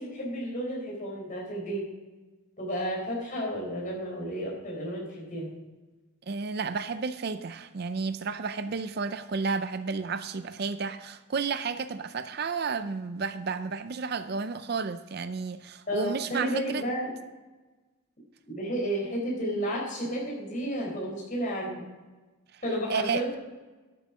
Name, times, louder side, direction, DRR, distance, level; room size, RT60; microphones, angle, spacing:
voice 1, 0.0-1.9 2.6-5.5 15.9-17.1 18.4-21.8 22.6-23.4, equal, 40° left, -3 dB, 4.4 m, -32 dB
voice 2, 6.3-16.8 22.5-22.6 22.9-23.2, right 5 dB, 50° right, 11 dB, 0.5 m, -32 dB
12.5 x 7.9 x 4.9 m, 1.2 s
head